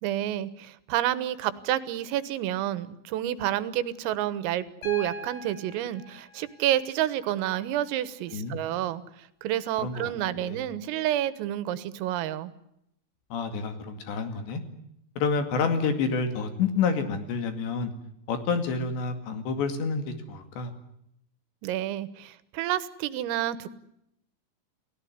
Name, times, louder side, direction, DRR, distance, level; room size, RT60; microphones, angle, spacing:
voice 1, 0.0-12.5 21.6-23.7, right 12 dB, 85° right, 14 dB, 3.9 m, -29 dB
Piano, 4.8-8.8 10.4-10.5, right 1 dB, 45° left, 7.3 m, -44 dB
voice 2, 9.8-10.6 13.3-14.6 15.2-17.9 18.3-20.0 20.3-20.7, left 5 dB, 65° left, 8 dB, 4.2 m, -28 dB
29.5 x 18.0 x 9.5 m, 0.76 s
omnidirectional pair, 5.9 m